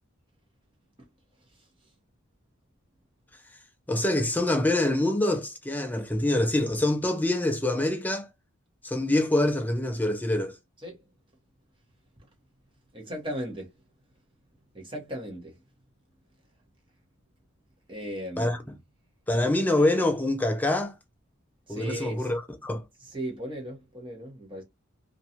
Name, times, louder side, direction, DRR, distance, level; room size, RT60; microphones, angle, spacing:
voice 1, 3.9-8.3 8.8-10.6 18.4-18.6 19.3-20.9 21.7-22.8, left 1 dB, 10° left, 0.4 m, -25 dB
voice 2, 12.9-13.7 14.7-15.5 17.9-18.6 21.7-22.3 23.0-24.6, right 1 dB, 25° right, 0.9 m, -36 dB
2.5 x 2.3 x 2.8 m
head